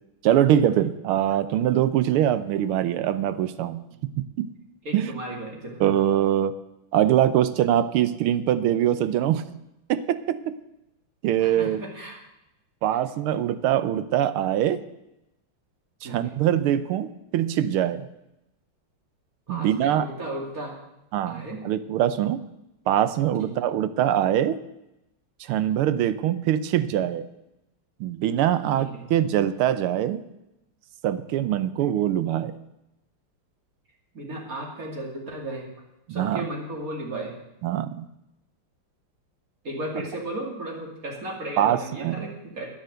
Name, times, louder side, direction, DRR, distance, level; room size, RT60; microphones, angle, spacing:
voice 1, 0.2-3.9 4.2-4.5 4.9-5.2 5.8-6.5 6.9-9.5 9.9-10.6 11.2-11.8 12.8-14.8 16.0-18.0 19.5-20.0 21.1-22.4 22.9-24.6 25.4-27.3 28.0-30.2 31.0-32.6 36.1-36.4 37.6-38.0 41.6-42.3, right 11 dB, 85° right, 13 dB, 1.6 m, -23 dB
voice 2, 4.8-5.8 11.4-12.2 16.0-16.3 19.5-20.8 21.3-21.6 23.4-23.5 28.8-29.0 34.1-35.7 36.1-37.3 39.6-42.7, right 1 dB, 40° right, 0 dB, 2.9 m, -35 dB
10.0 x 10.0 x 7.9 m, 0.90 s
omnidirectional pair, 2.4 m